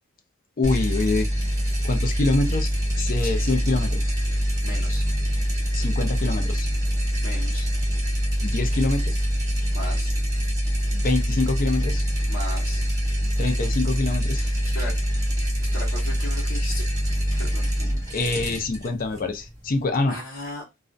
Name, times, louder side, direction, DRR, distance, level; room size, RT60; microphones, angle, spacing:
voice 1, 0.6-1.3 1.8-2.7 3.0-4.0 5.7-6.7 8.4-9.2 10.9-12.0 13.4-14.4 18.1-20.2, left 3 dB, 40° left, 0.5 m, -25 dB
sound 1, 0.6-19.9, equal, 15° right, 0.8 m, -25 dB
voice 2, 4.6-5.0 7.2-7.7 9.7-10.1 12.3-12.8 14.4-14.9 15.6-16.8 17.3-17.7 20.1-20.6, left 2 dB, 65° left, 0.9 m, -36 dB
2.4 x 2.1 x 2.5 m
head